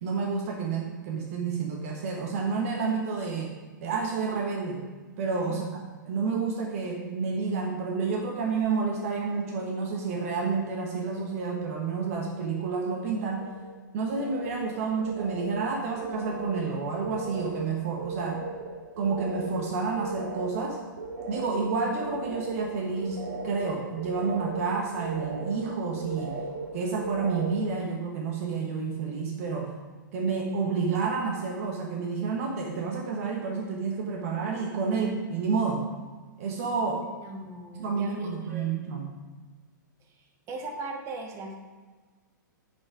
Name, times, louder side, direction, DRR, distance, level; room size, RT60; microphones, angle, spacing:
voice 1, 0.0-4.9 5.2-13.5 13.9-18.4 19.0-20.8 21.3-23.2 23.4-26.4 26.7-29.7 30.1-35.9 36.4-37.1 37.7-39.1, right 5 dB, 45° right, 1 dB, 1.2 m, -30 dB
sound 1, 10.5-10.7 11.0-11.7 12.0-27.8, right 2 dB, 60° right, 2.0 m, -38 dB
voice 2, 37.2-38.7 40.5-41.6, right 2 dB, 25° right, 2 dB, 1.4 m, -39 dB
10.0 x 5.6 x 4.8 m, 1.4 s
figure-of-eight pair, 110°, 11 cm